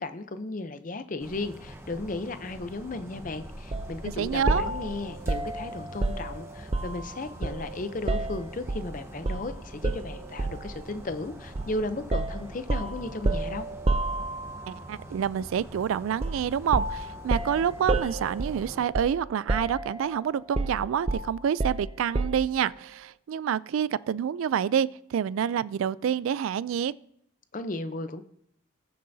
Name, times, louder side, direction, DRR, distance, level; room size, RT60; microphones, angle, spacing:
voice 1, 0.0-13.7 27.5-28.2, left 2 dB, 40° left, 10 dB, 0.6 m, -35 dB
sound 1, 1.2-18.9, right 1 dB, 15° right, 1.0 m, -45 dB
sound 2, 3.7-3.9 4.5-7.1 7.4-8.9 9.3-9.5 9.8-10.7 11.6-11.8 12.1-14.7 16.2-16.5 16.7-19.2 19.5-20.1 20.6-22.5, right 2 dB, 30° right, 0.5 m, -29 dB
voice 2, 4.2-4.7 14.7-26.9, right 8 dB, 90° right, 19 dB, 0.3 m, -28 dB
20.0 x 6.7 x 2.7 m, 0.74 s
head